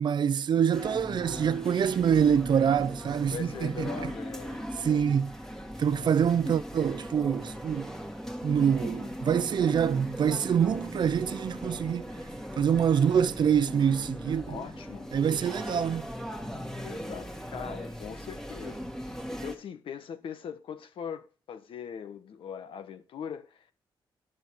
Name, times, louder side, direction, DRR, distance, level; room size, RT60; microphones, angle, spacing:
voice 1, 0.0-4.1 4.8-5.3 5.8-7.9 8.4-12.1 12.6-14.6 15.1-16.1, right 8 dB, 55° right, 0.6 m, -25 dB
sound 1, 0.7-19.6, equal, 5° left, 2.0 m, -39 dB
voice 2, 3.3-5.0 5.9-6.3 14.5-15.1 16.8-23.7, left 7 dB, 75° left, 1.3 m, -41 dB
11.0 x 6.4 x 6.3 m
cardioid pair, 100°, 9 cm